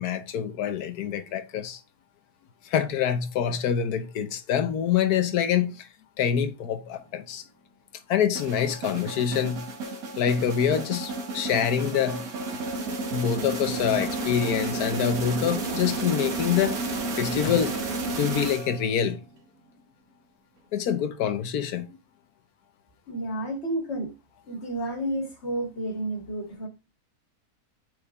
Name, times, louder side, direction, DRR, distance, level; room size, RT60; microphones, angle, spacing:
voice 1, 0.0-1.8 2.6-5.9 6.2-7.4 8.1-9.6 10.2-12.2 13.1-16.8 17.2-17.8 18.2-19.2 20.7-21.9, left 8 dB, 85° left, 1.3 m, -26 dB
sound 1, 8.3-19.0, right 2 dB, 70° right, 1.8 m, -31 dB
voice 2, 23.1-24.1 24.5-26.7, right 1 dB, 45° left, 2.0 m, -31 dB
8.9 x 5.0 x 2.4 m
omnidirectional pair, 1.6 m